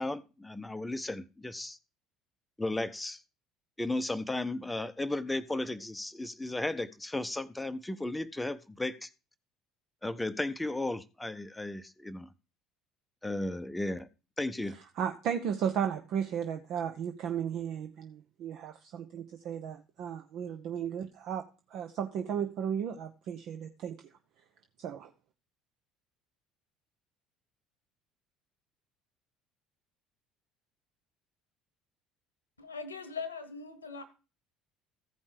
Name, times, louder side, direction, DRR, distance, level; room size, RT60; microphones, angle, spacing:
voice 1, 0.0-1.8 2.6-3.2 3.8-9.1 10.0-12.3 13.2-14.1 14.4-14.7, left 2 dB, 10° left, 0.7 m, -35 dB
voice 2, 15.0-24.0 24.8-25.1, right 8 dB, 50° right, 0.7 m, -35 dB
voice 3, 32.6-34.0, left 5 dB, 80° left, 1.1 m, -40 dB
15.0 x 5.3 x 5.0 m
figure-of-eight pair, 60°, 0 cm